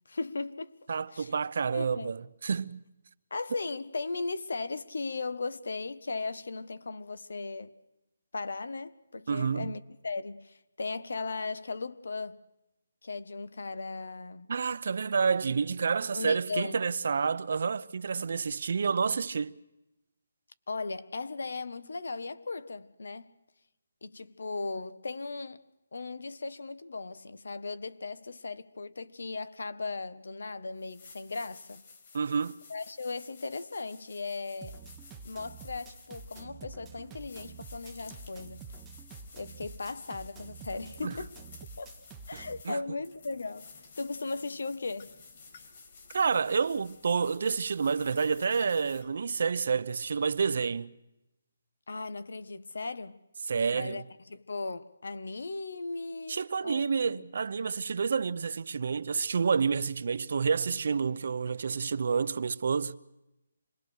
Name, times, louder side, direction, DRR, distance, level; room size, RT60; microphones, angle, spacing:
voice 1, 0.1-0.7 1.1-1.3 1.7-2.1 3.3-7.7 8.3-12.4 13.0-14.5 16.1-16.8 20.7-23.3 24.0-25.6 25.9-31.8 32.7-34.8 35.2-38.6 39.3-41.3 41.8-41.9 42.3-43.7 44.0-45.1 51.9-53.2 53.7-57.2, left 3 dB, 80° left, 1.4 m, -37 dB
voice 2, 0.9-2.8 9.3-9.7 14.5-19.5 32.1-32.6 41.0-41.1 42.6-42.8 46.1-50.9 53.5-54.0 56.3-63.0, right 5 dB, 55° right, 0.8 m, -29 dB
sound 1, 30.3-30.4 30.8-49.4, left 4 dB, 40° left, 3.2 m, -54 dB
sound 2, 34.6-42.6, right 5 dB, 10° right, 0.9 m, -48 dB
27.0 x 20.5 x 6.5 m
hypercardioid pair, 170°, 0 cm